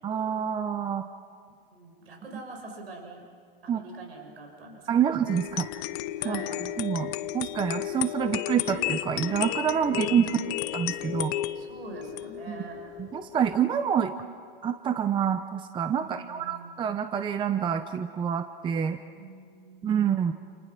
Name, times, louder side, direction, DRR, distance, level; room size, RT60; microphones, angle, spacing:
voice 1, 0.0-1.0 3.7-3.8 4.9-5.7 6.2-6.4 6.8-10.2 10.7-11.3 12.5-12.6 13.0-14.1 14.6-19.0 19.8-20.3, right 8 dB, 15° right, 9 dB, 0.9 m, -27 dB
voice 2, 1.7-3.2 3.6-5.1 6.2-6.6 9.9-10.4 11.5-12.8 16.0-16.9 19.2-19.9, right 3 dB, 85° right, 2 dB, 6.8 m, -44 dB
sound 1, 5.3-13.6, left 14 dB, 40° left, 1.0 m, -33 dB
29.5 x 29.5 x 6.1 m, 2.1 s
hypercardioid pair, 135°, 30 cm